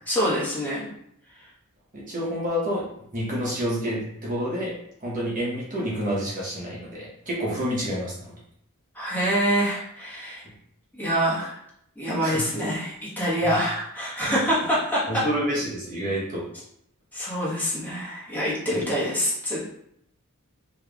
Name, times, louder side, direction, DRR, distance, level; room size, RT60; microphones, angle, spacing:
voice 1, 0.1-0.9 8.9-10.4 10.9-11.6 12.0-15.2 17.1-19.7, equal, 10° left, -8 dB, 1.3 m, -26 dB
voice 2, 1.9-2.9 3.1-4.7 5.0-8.3 12.1-12.5 13.2-13.5 14.3-14.4 15.1-16.4, equal, 35° right, -5 dB, 1.0 m, -29 dB
4.3 x 3.2 x 2.4 m, 0.71 s
head